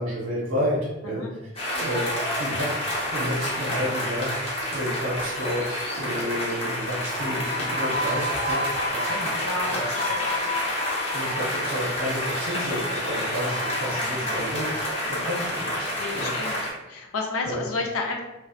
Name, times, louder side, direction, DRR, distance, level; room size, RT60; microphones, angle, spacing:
voice 1, 0.0-1.4 1.7-2.0 2.4-9.4 9.7-9.8 11.1-16.3 17.4-17.6, equal, 85° right, -5 dB, 0.7 m, -31 dB
Medieval Music, 1.6-16.7, left 1 dB, 25° left, 0.5 m, -28 dB
voice 2, 9.4-10.5 16.0-16.6 16.9-18.2, left 3 dB, 80° left, 1 dB, 0.5 m, -31 dB
2.6 x 2.0 x 2.3 m, 1.1 s
head